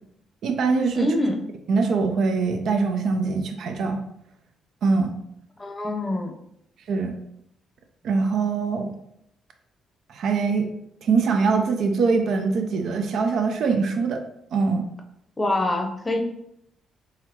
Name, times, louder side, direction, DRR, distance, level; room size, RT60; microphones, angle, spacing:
voice 1, 0.4-1.1 1.7-4.0 4.8-5.1 6.9-7.2 8.0-8.9 10.1-10.7 11.0-14.2 14.5-14.9, right 4 dB, 70° right, 5 dB, 0.5 m, -23 dB
voice 2, 0.9-1.4 5.6-6.3 15.4-16.2, left 1 dB, 20° left, 3 dB, 0.7 m, -25 dB
4.0 x 2.9 x 2.9 m, 0.76 s
cardioid pair, 90°, 0 cm